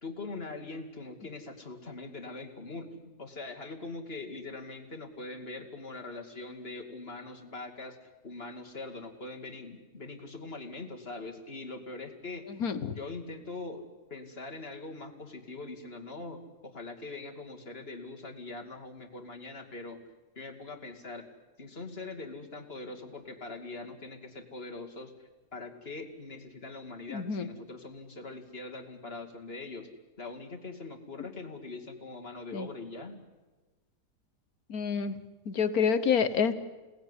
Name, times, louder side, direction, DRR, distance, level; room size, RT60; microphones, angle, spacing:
voice 1, 0.0-12.5 12.9-20.0 20.4-21.3 21.6-29.9 30.2-33.2, left 3 dB, 35° left, 4 dB, 2.5 m, -42 dB
voice 2, 12.5-12.9 27.1-27.5 32.5-32.7 34.7-35.2 35.4-36.5, left 6 dB, 60° left, 14 dB, 1.6 m, -28 dB
28.5 x 18.5 x 9.8 m, 1.2 s
omnidirectional pair, 1.8 m